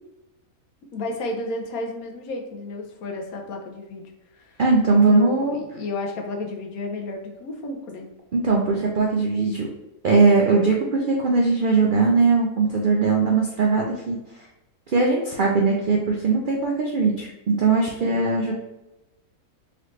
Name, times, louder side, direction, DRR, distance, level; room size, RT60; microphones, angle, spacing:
voice 1, 0.9-4.0 4.3-4.6 5.1-8.0 18.0-18.3, left 2 dB, 75° left, 2 dB, 1.2 m, -32 dB
voice 2, 4.6-5.6 8.3-9.7 10.0-14.2 14.9-18.5, right 4 dB, 75° right, -1 dB, 0.4 m, -20 dB
4.1 x 3.1 x 3.1 m, 0.95 s
omnidirectional pair, 1.6 m